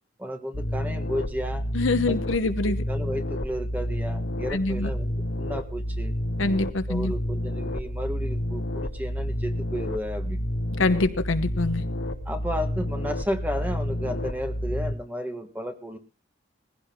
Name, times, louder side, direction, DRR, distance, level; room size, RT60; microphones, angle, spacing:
voice 1, 0.2-1.7 2.1-2.2 2.4-6.1 6.9-10.5 12.2-16.0, equal, 10° right, 6 dB, 1.4 m, -33 dB
sound 1, 0.5-14.9, equal, 60° left, 1.3 m, -30 dB
voice 2, 1.7-2.8 4.5-4.9 6.4-7.1 10.8-11.8, left 2 dB, 80° left, 9 dB, 1.1 m, -25 dB
21.0 x 16.0 x 2.2 m, 0.33 s
head